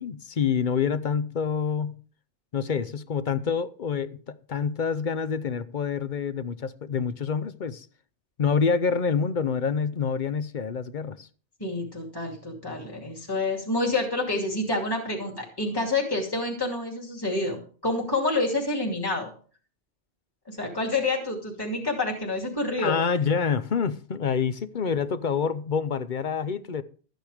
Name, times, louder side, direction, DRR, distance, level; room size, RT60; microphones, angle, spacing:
voice 1, 0.0-2.0 2.5-7.9 8.4-11.3 22.8-26.8, left 6 dB, 50° left, 0.8 m, -27 dB
voice 2, 11.6-19.3 20.5-22.9, left 2 dB, 20° left, 2.6 m, -28 dB
13.5 x 9.1 x 5.0 m
omnidirectional pair, 1.2 m